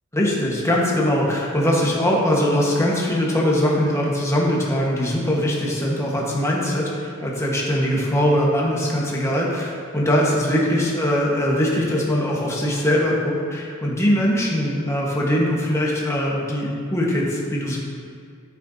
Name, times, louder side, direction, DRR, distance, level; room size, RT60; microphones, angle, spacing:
voice 1, 0.1-17.8, equal, 15° left, -4 dB, 1.3 m, -21 dB
10.0 x 8.6 x 2.8 m, 2.2 s
head